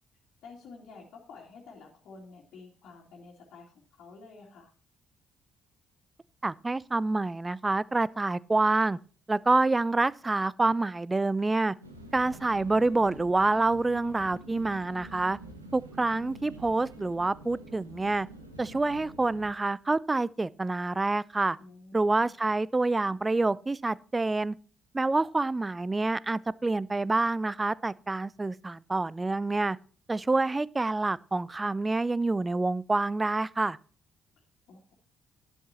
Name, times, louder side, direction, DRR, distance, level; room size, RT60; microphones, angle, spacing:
voice 1, 0.4-4.7 21.6-22.3 34.4-34.9, left 4 dB, 55° left, 2.7 m, -50 dB
voice 2, 6.4-9.0 9.3-11.7 12.1-15.4 15.7-18.3 18.6-21.6 21.9-24.5 24.9-29.8 30.1-33.8, right 2 dB, 20° right, 0.4 m, -27 dB
sound 1, 11.8-19.5, right 1 dB, 85° right, 1.4 m, -47 dB
11.5 x 10.5 x 3.0 m
figure-of-eight pair, 45°, 0 cm